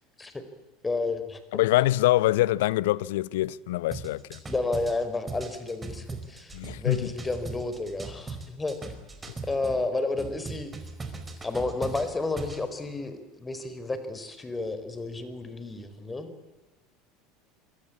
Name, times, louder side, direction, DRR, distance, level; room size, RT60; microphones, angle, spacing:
voice 1, 0.8-1.4 4.5-8.8 9.5-10.7 11.4-16.3, left 3 dB, 15° left, 4.6 m, -31 dB
voice 2, 1.5-4.4 6.5-7.1, left 16 dB, 65° left, 0.8 m, -24 dB
sound 1, 3.9-9.8 10.2-12.6, right 3 dB, 20° right, 5.0 m, -39 dB
26.0 x 24.0 x 8.7 m
figure-of-eight pair, 70°, 0 cm